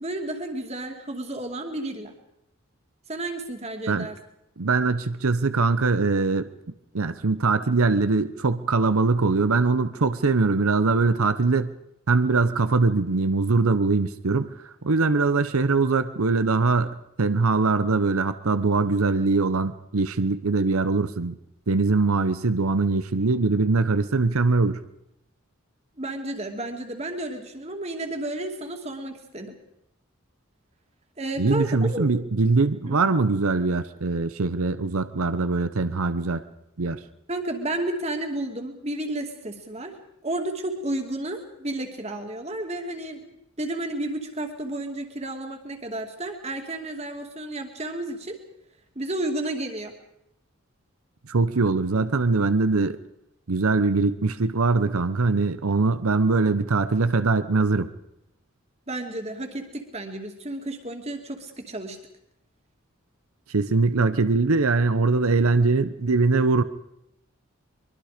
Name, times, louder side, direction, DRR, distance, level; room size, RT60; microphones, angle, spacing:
voice 1, 0.0-2.1 3.1-4.2 26.0-29.6 31.2-32.1 32.9-33.0 37.3-39.9 40.2-48.4 49.0-49.9 58.9-62.0, right 1 dB, 30° right, 5 dB, 2.6 m, -32 dB
voice 2, 4.6-6.5 6.9-11.7 12.1-21.4 21.7-24.8 31.4-36.4 36.8-37.0 51.3-53.0 53.5-57.9 63.5-66.6, right 3 dB, 90° right, 12 dB, 0.8 m, -22 dB
24.0 x 23.0 x 5.1 m, 0.80 s
head